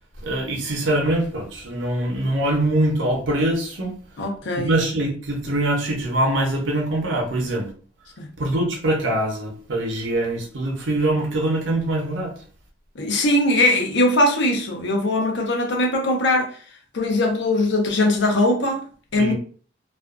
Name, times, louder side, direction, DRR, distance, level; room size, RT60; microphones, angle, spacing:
voice 1, 0.2-4.0 4.6-7.7 8.4-12.3 19.2-19.3, right 1 dB, 75° right, 0.7 m, -23 dB
voice 2, 4.2-4.8 8.2-8.3 12.9-16.6 16.9-18.8 19.1-19.3, left 1 dB, 65° left, 0.6 m, -20 dB
2.4 x 2.2 x 2.4 m
head